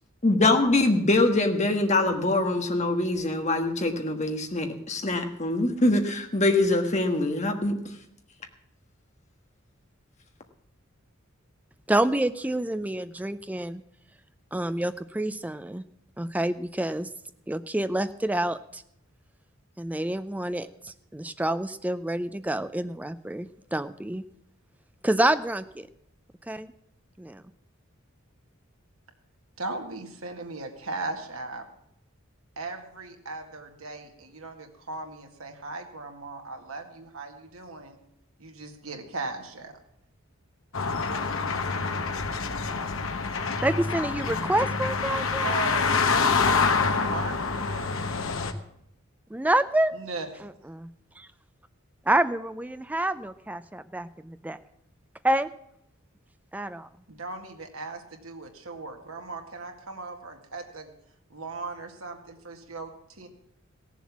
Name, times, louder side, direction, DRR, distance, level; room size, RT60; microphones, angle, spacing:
voice 1, 0.2-7.8, left 2 dB, 35° left, 5 dB, 1.4 m, -24 dB
voice 2, 11.9-13.8 14.5-15.8 16.2-17.1 17.5-18.8 19.8-24.2 25.0-25.9 26.5-26.7 27.2-27.4 43.6-45.5 49.3-50.0 50.4-50.9 51.2-51.3 52.1-54.6 55.2-55.5 56.5-56.9, right 1 dB, 5° right, 12 dB, 0.4 m, -28 dB
voice 3, 29.6-31.6 32.6-38.0 38.4-39.7 45.4-46.3 46.7-47.9 49.9-50.5 57.1-60.9 61.3-63.3, right 3 dB, 85° right, 4 dB, 2.0 m, -38 dB
sound 1, 40.7-48.5, left 4 dB, 70° left, 1.1 m, -26 dB
17.0 x 7.2 x 7.2 m, 0.77 s
head